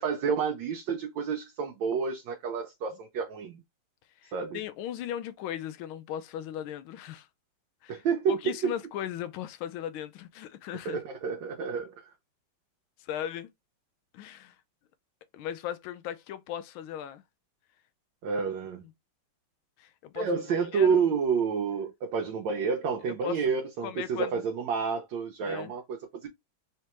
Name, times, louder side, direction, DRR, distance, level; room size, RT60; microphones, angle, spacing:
voice 1, 0.0-3.6 4.3-4.6 7.9-8.4 8.6-8.7 10.8-12.1 18.2-18.9 20.1-26.3, right 6 dB, 70° right, 1.3 m, -29 dB
voice 2, 4.2-7.3 7.8-8.0 8.3-11.0 13.0-13.5 14.1-14.6 15.3-17.2 19.8-21.0 23.1-23.4 23.8-24.4 25.4-25.7, left 10 dB, 90° left, 1.4 m, -37 dB
3.6 x 3.4 x 2.9 m
omnidirectional pair, 2.2 m